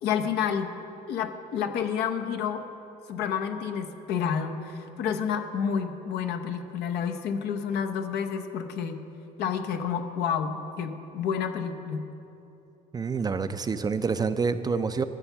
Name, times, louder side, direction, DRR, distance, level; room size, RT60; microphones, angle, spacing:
voice 1, 0.0-0.7 1.1-2.6 3.1-9.0 9.4-12.0, left 7 dB, 80° left, 7 dB, 0.8 m, -29 dB
voice 2, 12.9-15.0, right 5 dB, 25° right, 11 dB, 0.4 m, -27 dB
13.0 x 6.9 x 5.8 m, 2.9 s
cardioid pair, 110°, 17 cm